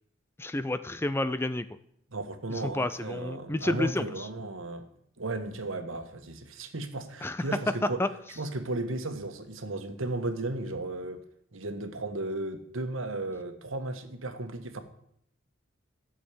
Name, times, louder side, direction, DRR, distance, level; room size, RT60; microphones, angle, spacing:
voice 1, 0.4-1.7 2.5-4.3 7.2-8.1, left 1 dB, 10° left, 0.4 m, -30 dB
voice 2, 2.1-4.8 5.2-8.0 8.4-11.2 11.5-14.8, right 2 dB, 80° right, 1.4 m, -35 dB
12.5 x 6.4 x 8.4 m
head